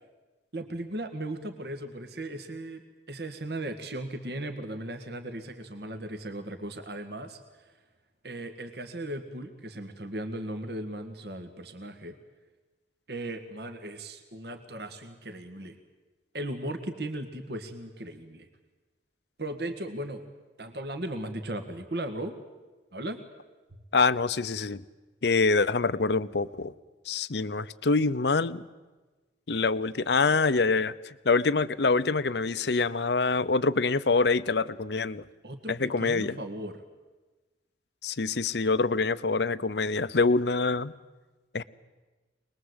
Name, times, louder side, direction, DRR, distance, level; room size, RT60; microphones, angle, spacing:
voice 1, 0.5-2.8 3.1-7.4 8.2-12.2 13.1-15.8 16.3-18.5 19.4-20.2 20.6-22.3 22.9-23.2 35.4-36.8, right 1 dB, 65° right, 7 dB, 1.8 m, -37 dB
voice 2, 23.9-24.8 25.2-26.7 27.1-28.6 29.5-35.2 35.7-36.4 38.0-40.9 41.5-41.6, left 4 dB, 70° left, 15 dB, 0.7 m, -25 dB
25.0 x 21.0 x 8.1 m, 1.2 s
head